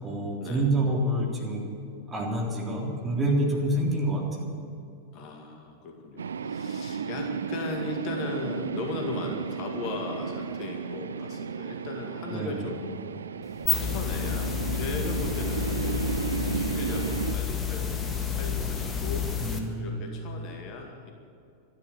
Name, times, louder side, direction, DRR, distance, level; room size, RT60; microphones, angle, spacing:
voice 1, 0.0-1.6 2.1-4.2 12.3-12.7 19.4-20.1, right 1 dB, 20° right, -2 dB, 3.6 m, -27 dB
voice 2, 5.1-12.8 13.6-16.1 16.5-18.0 18.3-19.3 19.8-21.1, left 3 dB, 40° left, 2 dB, 2.1 m, -37 dB
sound 1, 6.2-17.4, right 6 dB, 70° right, 0.4 m, -34 dB
sound 2, 13.4-19.6, left 6 dB, 20° left, 1.7 m, -30 dB
13.0 x 11.5 x 9.4 m, 2.6 s
figure-of-eight pair, 90°, 0 cm